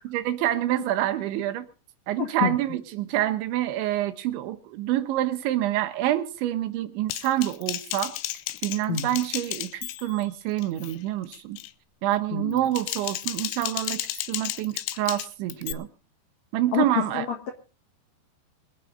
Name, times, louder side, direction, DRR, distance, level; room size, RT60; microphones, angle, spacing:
voice 1, 0.1-1.7 2.1-8.2 8.6-11.6 12.0-14.0 14.3-15.9 16.5-17.3, right 13 dB, 80° right, 3.4 m, -27 dB
voice 2, 2.2-2.6 8.9-9.1 12.3-12.7 16.7-17.5, left 8 dB, 65° left, 1.7 m, -28 dB
Typing, 7.1-10.3 10.6-11.0 11.3-11.7 12.5-15.7, left 16 dB, 80° left, 3.2 m, -33 dB
24.5 x 9.6 x 3.8 m
omnidirectional pair, 5.4 m